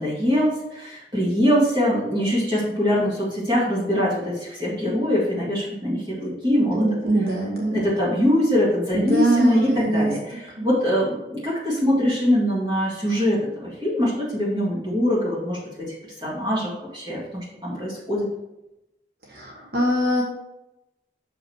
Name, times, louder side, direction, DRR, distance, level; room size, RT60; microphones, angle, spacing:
voice 1, 0.0-6.8 7.7-15.6 16.2-18.3, equal, 25° right, -7 dB, 1.9 m, -23 dB
voice 2, 6.7-7.8 8.9-10.1 10.6-10.7 19.3-20.2, right 1 dB, 60° right, -2 dB, 1.2 m, -22 dB
6.2 x 5.2 x 4.5 m, 0.94 s
head